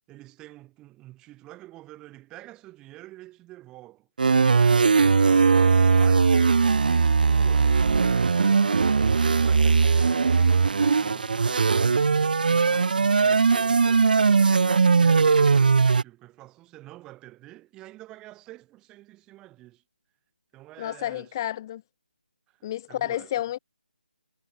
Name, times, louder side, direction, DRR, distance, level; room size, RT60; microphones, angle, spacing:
voice 1, 0.1-4.1 4.6-8.7 9.0-14.5 15.0-19.8 20.5-21.3 22.5-23.5, right 17 dB, 15° right, 6.8 m, -47 dB
sound 1, 4.2-16.0, right 5 dB, 60° right, 0.4 m, -19 dB
voice 2, 20.8-21.8 22.6-23.6, left 13 dB, 25° left, 0.6 m, -30 dB
figure-of-eight pair, 155°, 5 cm